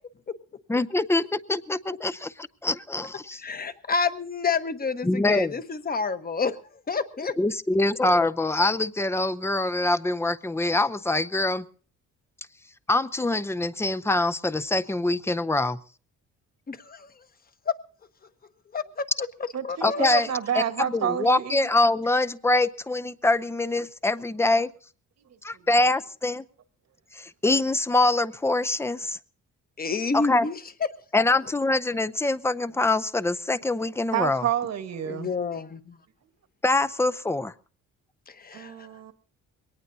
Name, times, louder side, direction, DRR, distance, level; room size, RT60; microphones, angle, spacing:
voice 1, 0.7-3.4 5.0-5.5 7.4-11.7 12.9-15.8 19.8-20.3 20.5-20.6 20.9-24.7 25.4-26.4 27.1-29.2 30.1-30.5 31.1-34.4 36.6-37.5, left 2 dB, 10° left, 14 dB, 0.6 m, -24 dB
voice 2, 3.4-6.6 6.9-7.3 16.7-17.1 17.7-17.8 18.7-19.0 19.6-20.2 29.8-30.5 35.0-36.0 38.3-38.9, left 5 dB, 30° left, 10 dB, 1.2 m, -29 dB
voice 3, 19.5-21.7 25.5-25.7 34.1-35.3 38.5-39.1, right 9 dB, 60° right, 9 dB, 1.5 m, -29 dB
22.0 x 18.5 x 2.7 m, 0.43 s
cardioid pair, 90°, 30 cm